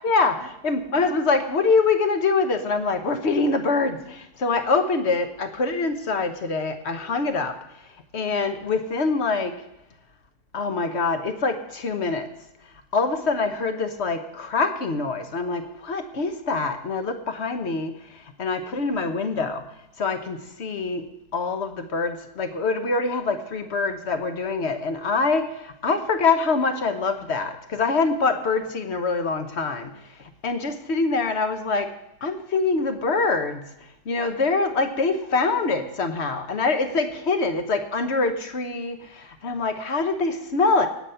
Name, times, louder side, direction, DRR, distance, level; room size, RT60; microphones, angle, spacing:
voice 1, 0.0-7.6 8.1-9.6 10.5-12.3 12.9-19.6 20.0-21.1 21.3-29.9 30.4-31.9 32.2-33.7 34.1-40.9, left 4 dB, 45° left, 8 dB, 1.1 m, -24 dB
18.0 x 7.9 x 5.7 m, 0.87 s
omnidirectional pair, 1.8 m